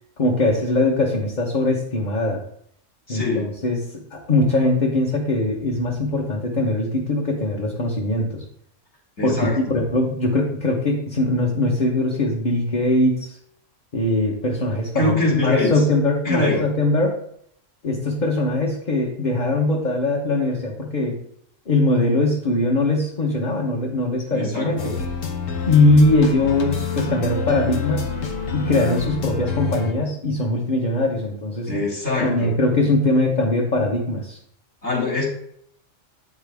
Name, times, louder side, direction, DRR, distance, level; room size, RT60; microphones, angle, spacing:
voice 1, 0.2-2.4 3.1-8.4 9.2-13.4 13.9-17.2 17.8-21.2 21.7-24.9 25.7-28.1 28.5-31.7 32.2-34.4, left 2 dB, 35° left, -1 dB, 1.1 m, -21 dB
voice 2, 3.1-3.5 9.2-9.6 14.9-15.8 16.2-16.6 24.3-24.9 31.7-32.5 34.8-35.3, left 2 dB, 60° left, -5 dB, 2.6 m, -23 dB
sound 1, 24.8-29.9, left 6 dB, 85° left, 1.4 m, -28 dB
8.7 x 6.0 x 3.5 m, 0.70 s
omnidirectional pair, 1.3 m